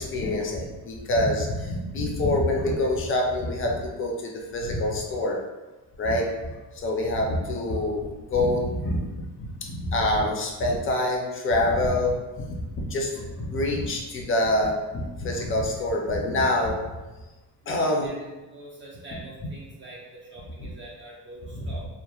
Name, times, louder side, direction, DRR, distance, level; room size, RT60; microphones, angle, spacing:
voice 1, 0.0-5.4 6.0-6.3 6.7-12.2 12.7-16.8 17.7-18.1 20.6-20.7 21.5-21.8, left 1 dB, 35° left, 0 dB, 0.4 m, -26 dB
voice 2, 17.6-21.9, right 2 dB, 35° right, -5 dB, 0.4 m, -44 dB
3.0 x 2.0 x 2.3 m, 1.1 s
cardioid pair, 155°, 37 cm